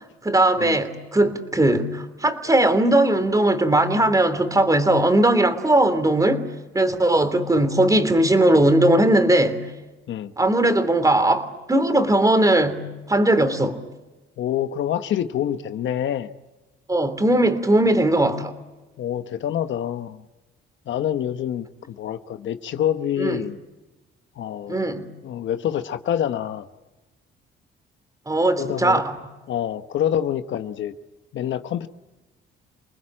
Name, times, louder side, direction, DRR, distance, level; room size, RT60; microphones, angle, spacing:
voice 1, 0.0-6.5 6.7-9.6 10.4-13.8 16.9-18.5 23.2-23.4 24.7-25.1 28.3-29.1, right 1 dB, 15° right, 3.2 m, -19 dB
voice 2, 14.4-16.3 19.0-20.2 20.9-23.6 24.4-24.9 25.2-26.7 28.6-29.0 29.5-30.9 31.3-31.9, left 10 dB, 70° left, 1.2 m, -26 dB
28.5 x 20.0 x 8.9 m
cardioid pair, 90°, 20 cm